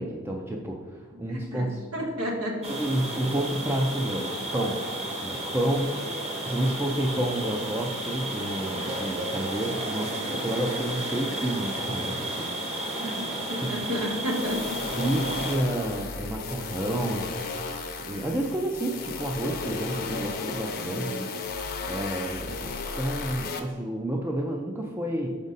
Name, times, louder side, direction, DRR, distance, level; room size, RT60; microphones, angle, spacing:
voice 1, 0.0-1.9 2.7-4.8 5.2-12.5 13.0-13.7 15.0-17.3 18.0-21.3 21.9-25.4, right 1 dB, 10° right, 0 dB, 0.4 m, -30 dB
voice 2, 1.3-1.7 1.9-2.7 13.1-14.8, equal, 85° right, 0 dB, 1.5 m, -31 dB
sound 1, 2.6-15.6, right 1 dB, 30° right, 1.0 m, -33 dB
sound 2, 14.2-23.6, left 4 dB, 45° left, 0.7 m, -34 dB
6.1 x 5.2 x 4.0 m, 1.5 s
head